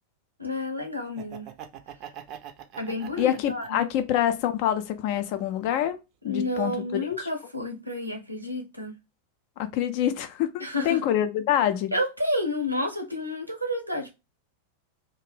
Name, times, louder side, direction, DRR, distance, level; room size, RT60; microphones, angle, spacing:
voice 1, 0.4-1.5 2.8-3.9 6.2-9.0 10.6-11.0 11.9-14.1, left 1 dB, 85° right, 0.7 m, -30 dB
Laughter, 1.0-4.2 4.6-5.8, right 10 dB, 40° right, 0.4 m, -44 dB
voice 2, 3.2-6.0 6.2-7.3 9.6-11.9, left 11 dB, 45° left, 0.4 m, -26 dB
2.4 x 2.1 x 3.2 m
figure-of-eight pair, 90°, 0 cm